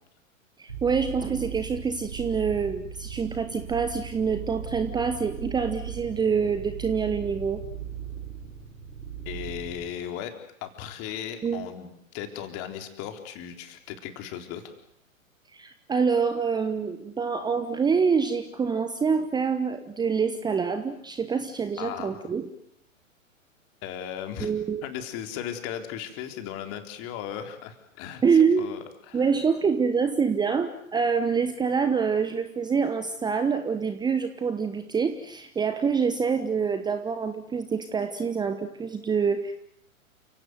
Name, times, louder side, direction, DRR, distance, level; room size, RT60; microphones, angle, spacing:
voice 1, 0.6-7.6 11.4-11.7 15.5-22.5 24.4-24.8 28.2-28.7 29.1-39.5, right 5 dB, 10° right, 9 dB, 1.2 m, -26 dB
sound 1, 0.7-9.9, right 9 dB, 85° right, 6.9 m, -38 dB
voice 2, 9.3-10.3 10.6-14.7 21.8-22.2 23.8-24.5 24.8-28.2 28.6-29.3, left 9 dB, 35° left, 6 dB, 3.9 m, -36 dB
29.5 x 17.0 x 9.5 m, 0.74 s
figure-of-eight pair, 110°, 40 cm